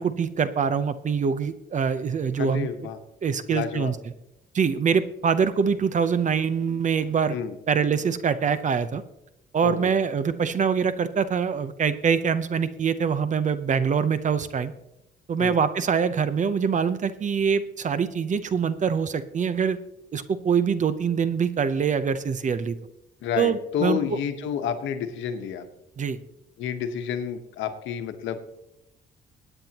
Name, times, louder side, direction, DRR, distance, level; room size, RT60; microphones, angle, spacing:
voice 1, 0.0-2.7 3.2-4.0 4.5-7.3 7.7-9.0 9.5-14.7 15.3-19.8 20.1-22.8 23.4-24.0 26.0-26.2, right 6 dB, 40° right, 13 dB, 0.8 m, -24 dB
voice 2, 2.4-3.0 3.5-3.9 7.3-7.6 9.6-9.9 15.4-15.6 23.2-25.7 26.6-28.4, left 8 dB, 90° left, 8 dB, 1.2 m, -30 dB
21.0 x 8.9 x 3.0 m, 0.87 s
cardioid pair, 105°, 19 cm